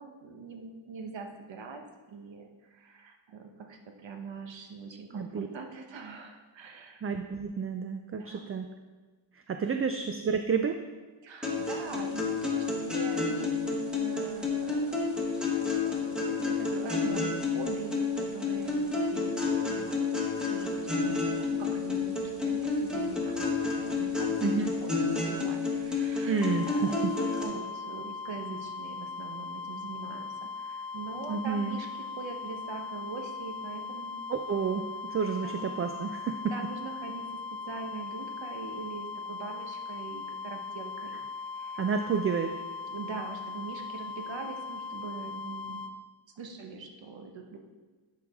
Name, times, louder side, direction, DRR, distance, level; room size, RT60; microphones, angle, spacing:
voice 1, 0.0-1.8 2.1-7.1 8.1-8.5 9.6-9.8 11.2-15.0 15.3-20.2 20.5-23.4 23.7-24.9 25.2-30.3 30.6-34.3 35.4-35.7 36.5-37.2 37.6-41.2 41.5-41.8 42.8-45.8 46.4-47.6, right 4 dB, 70° right, 3 dB, 1.1 m, -43 dB
voice 2, 5.1-5.5 7.0-8.6 9.3-10.8 24.4-24.7 26.3-27.1 31.3-31.8 34.3-34.8 35.1-36.5 41.8-42.5, right 5 dB, 30° right, 6 dB, 0.4 m, -30 dB
sound 1, 11.4-27.4, left 4 dB, ahead, 1.4 m, -30 dB
sound 2, 26.4-45.9, left 4 dB, 45° left, 0.6 m, -39 dB
11.0 x 4.8 x 3.5 m, 1.3 s
wide cardioid pair, 105°, 47 cm